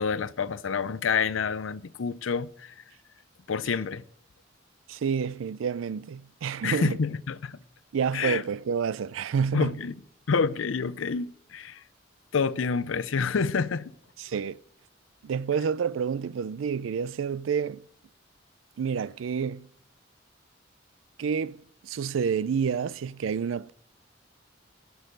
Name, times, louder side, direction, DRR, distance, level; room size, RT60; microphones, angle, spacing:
voice 1, 0.0-2.8 3.5-4.0 6.6-7.6 8.1-8.4 9.5-10.0 10.3-11.8 12.3-13.9, left 5 dB, 85° left, 0.6 m, -28 dB
voice 2, 4.9-7.0 7.9-9.7 14.2-14.6 15.2-17.8 18.8-19.7 21.2-23.7, right 6 dB, 90° right, 0.4 m, -29 dB
16.5 x 6.3 x 5.2 m
head